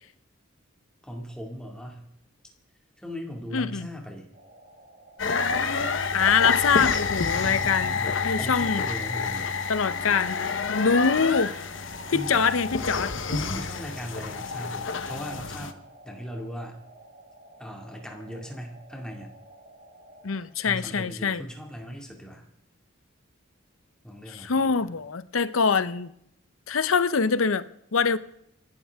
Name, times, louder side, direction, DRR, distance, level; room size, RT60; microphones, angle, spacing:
voice 1, 1.0-2.0 3.0-4.3 7.3-9.5 12.1-12.5 13.3-16.8 17.6-19.3 20.6-22.4 24.0-24.8, equal, 5° left, 2.2 m, -38 dB
voice 2, 3.5-3.9 6.1-8.0 8.2-8.8 9.7-10.4 10.7-11.5 12.1-13.1 20.2-21.4 24.3-26.1 26.7-27.7 27.9-28.2, left 5 dB, 85° left, 0.7 m, -24 dB
sound 1, 4.3-20.4, right 2 dB, 45° right, 4.0 m, -52 dB
sound 2, 5.2-15.7, left 5 dB, 65° left, 1.0 m, -28 dB
28.5 x 12.0 x 3.6 m
head